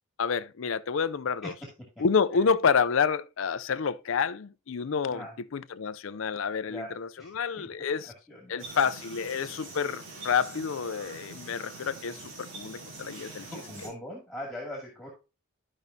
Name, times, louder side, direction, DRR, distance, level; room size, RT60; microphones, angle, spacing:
voice 1, 0.2-1.5 2.0-5.3 5.5-8.1 8.5-13.5, left 6 dB, 70° left, 0.5 m, -28 dB
voice 2, 6.7-7.7 8.0-8.6 13.4-15.1, left 1 dB, ahead, 2.2 m, -41 dB
sound 1, 8.6-13.9, right 3 dB, 65° right, 3.0 m, -44 dB
12.5 x 5.4 x 2.7 m
head